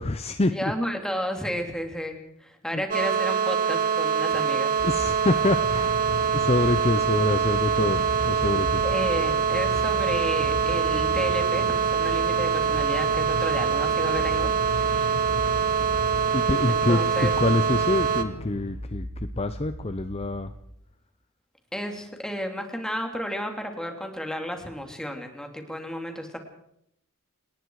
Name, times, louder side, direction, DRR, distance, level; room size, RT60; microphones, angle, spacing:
voice 1, 0.0-0.6 2.7-2.8 4.8-6.1 6.3-8.8 16.3-19.1 19.4-20.5, left 2 dB, 25° left, 10 dB, 0.7 m, -26 dB
voice 2, 0.5-4.8 8.8-15.2 16.7-17.3 21.7-26.4, equal, 5° left, 4 dB, 3.0 m, -32 dB
sound 1, 2.9-18.2, right 7 dB, 40° right, 1.5 m, -24 dB
sound 2, 4.8-20.8, equal, 70° right, 4.1 m, -39 dB
sound 3, 5.0-18.9, left 2 dB, 85° left, 1.0 m, -37 dB
29.0 x 19.5 x 4.9 m, 0.74 s
head